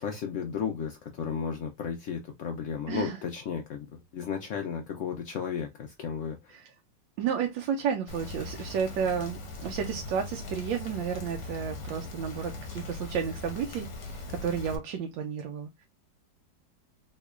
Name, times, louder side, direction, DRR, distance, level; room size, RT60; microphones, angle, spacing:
voice 1, 0.0-6.5, left 7 dB, 90° left, 0.6 m, -34 dB
voice 2, 2.9-3.2 6.5-6.7 7.2-15.9, right 7 dB, 90° right, 1.3 m, -32 dB
Rain, 8.1-14.8, left 2 dB, 50° left, 0.9 m, -40 dB
3.6 x 3.1 x 2.3 m
omnidirectional pair, 2.0 m